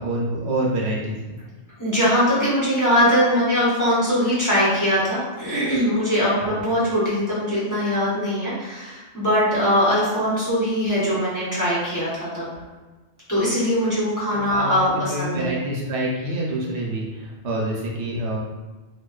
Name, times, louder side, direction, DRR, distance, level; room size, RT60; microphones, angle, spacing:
voice 1, 0.0-1.3 6.4-6.6 14.3-18.4, right 1 dB, 75° right, -3 dB, 0.8 m, -27 dB
voice 2, 1.8-12.5 13.3-15.5, equal, 20° left, -10 dB, 0.8 m, -21 dB
2.7 x 2.2 x 2.3 m, 1.2 s
omnidirectional pair, 1.2 m